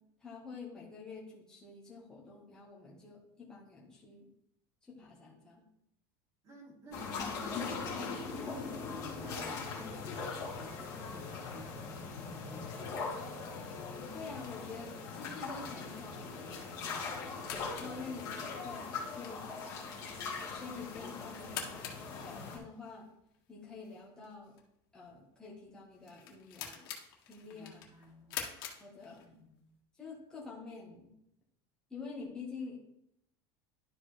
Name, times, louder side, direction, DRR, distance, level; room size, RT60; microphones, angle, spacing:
voice 1, 0.2-4.3 4.8-5.6 14.0-16.8 17.5-19.4 20.5-21.7 22.2-23.1 23.5-24.5 24.9-26.8 27.3-27.8 28.8-29.4 30.0-31.1 31.9-33.0, left 4 dB, 5° left, -5 dB, 1.5 m, -47 dB
voice 2, 6.4-12.9 19.3-19.4 19.7-20.5 27.4-28.6 29.2-29.6, equal, 30° right, -4 dB, 3.2 m, -53 dB
sound 1, 6.9-22.6, left 4 dB, 30° left, 2.2 m, -41 dB
sound 2, 13.9-29.6, left 8 dB, 85° left, 1.6 m, -49 dB
11.5 x 5.0 x 3.4 m, 0.78 s
cardioid pair, 180°, 12 cm